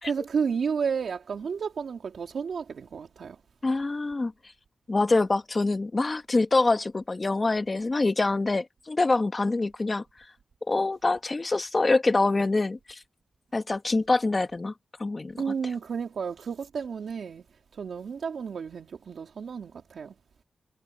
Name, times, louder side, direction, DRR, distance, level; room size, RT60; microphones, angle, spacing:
voice 1, 0.0-3.4 15.4-20.1, right 6 dB, 80° right, 2.6 m, -32 dB
voice 2, 3.6-4.3 4.9-10.0 10.7-13.0 13.5-14.7 15.0-15.4, left 3 dB, 35° left, 1.6 m, -25 dB
cardioid pair, 80°, 0 cm